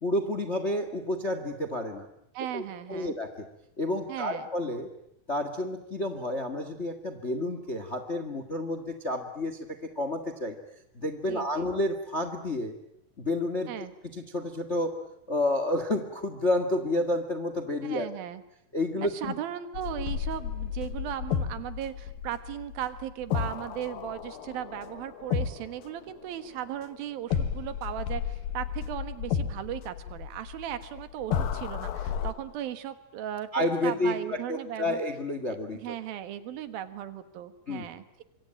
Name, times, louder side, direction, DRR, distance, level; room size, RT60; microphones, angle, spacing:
voice 1, 0.0-2.1 2.5-2.6 2.9-3.5 3.8-4.9 5.3-10.6 10.9-12.7 13.2-13.7 14.1-15.0 15.3-18.1 18.7-19.3 33.5-35.9 37.7-37.9, left 1 dB, 30° left, 9 dB, 1.2 m, -30 dB
voice 2, 2.3-3.1 4.1-4.5 11.3-11.7 13.7-13.9 17.8-18.4 19.0-35.0 35.5-38.2, right 11 dB, 80° right, 11 dB, 3.3 m, -37 dB
sound 1, 19.7-26.8 27.3-32.3, left 8 dB, 75° left, 3.3 m, -33 dB
26.0 x 24.0 x 9.0 m, 0.77 s
omnidirectional pair, 4.2 m